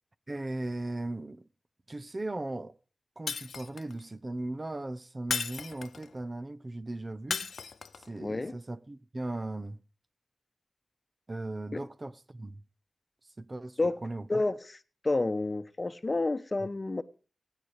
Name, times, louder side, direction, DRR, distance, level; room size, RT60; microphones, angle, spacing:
voice 1, 0.3-1.5 1.9-2.8 3.2-7.5 8.0-9.8 11.3-12.6 13.4-14.4 16.6-16.7, right 2 dB, 35° right, 0.9 m, -38 dB
Shatter, 3.3-4.0 5.3-6.1 7.3-8.1, left 5 dB, 85° left, 0.5 m, -35 dB
voice 2, 8.2-8.5 11.7-11.8 13.8-14.0 14.3-14.6 15.0-17.0, left 2 dB, 35° left, 1.0 m, -29 dB
18.0 x 9.3 x 4.9 m
cardioid pair, 55°, 0 cm